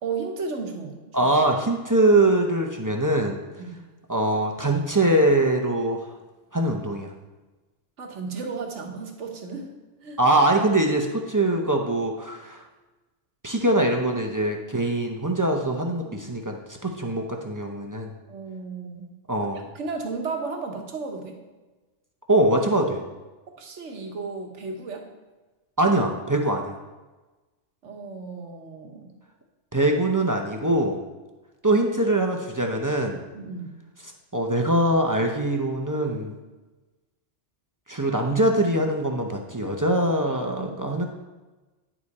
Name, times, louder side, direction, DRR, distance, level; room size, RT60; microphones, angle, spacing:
voice 1, 0.0-1.2 3.6-3.8 8.0-9.7 10.0-10.2 16.1-16.3 18.3-19.1 19.5-21.4 23.6-25.1 27.8-29.1 33.3-33.7 40.3-40.8, right 4 dB, 80° right, 3 dB, 1.4 m, -34 dB
voice 2, 1.1-3.4 4.1-6.1 6.5-7.1 10.2-12.6 13.4-16.6 16.8-18.1 19.3-19.6 22.3-23.0 25.8-26.8 29.7-31.0 31.6-33.2 34.3-36.3 37.9-41.1, right 1 dB, 20° right, 1 dB, 0.5 m, -23 dB
9.8 x 4.9 x 4.1 m, 1.2 s
omnidirectional pair, 1.2 m